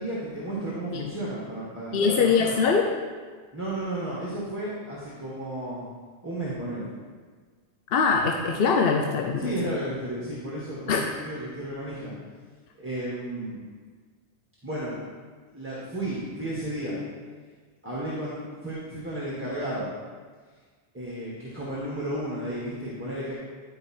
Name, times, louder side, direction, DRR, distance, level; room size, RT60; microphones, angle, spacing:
voice 1, 0.0-2.6 3.5-5.8 6.2-6.9 9.4-12.1 12.8-13.6 14.6-15.1 15.5-17.0 17.8-19.9 20.9-23.3, right 1 dB, 10° right, -8 dB, 1.5 m, -33 dB
voice 2, 1.9-2.8 7.9-9.5 10.9-11.0, left 5 dB, 65° left, 2 dB, 0.8 m, -22 dB
10.5 x 4.7 x 4.4 m, 1.5 s
omnidirectional pair, 1.1 m